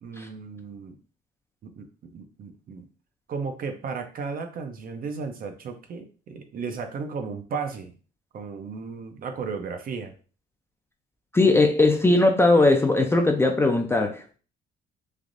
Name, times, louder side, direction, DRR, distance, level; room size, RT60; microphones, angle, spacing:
voice 1, 0.0-1.0 1.6-2.9 3.3-7.9 8.3-10.1, right 5 dB, 50° right, 6 dB, 0.5 m, -34 dB
voice 2, 11.3-14.4, left 2 dB, 15° left, 3 dB, 0.4 m, -19 dB
3.3 x 2.4 x 2.5 m, 0.37 s
cardioid pair, 110°, 19 cm